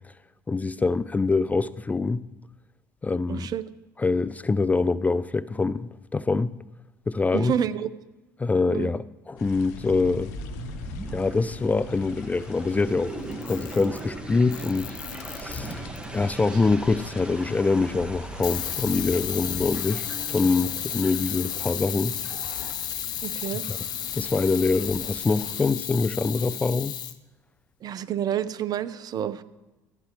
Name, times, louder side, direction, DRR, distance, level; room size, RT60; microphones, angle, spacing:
voice 1, 0.5-2.2 3.0-3.5 4.0-6.5 7.1-7.5 8.4-10.3 11.1-15.0 15.3-22.2 23.7-23.8 24.1-27.0, left 3 dB, 15° left, 0.3 m, -25 dB
voice 2, 3.3-3.6 7.3-7.9 8.7-8.9 23.2-23.6 27.8-29.4, right 9 dB, 45° right, 0.6 m, -28 dB
sound 1, 9.4-25.7, left 5 dB, 75° left, 1.0 m, -45 dB
sound 2, 10.2-22.7, right 1 dB, 10° right, 1.4 m, -39 dB
Camera, 13.3-14.1 14.5-16.0 18.4-27.2, left 10 dB, 50° left, 0.8 m, -33 dB
14.0 x 9.5 x 3.0 m
hypercardioid pair, 70°, 9 cm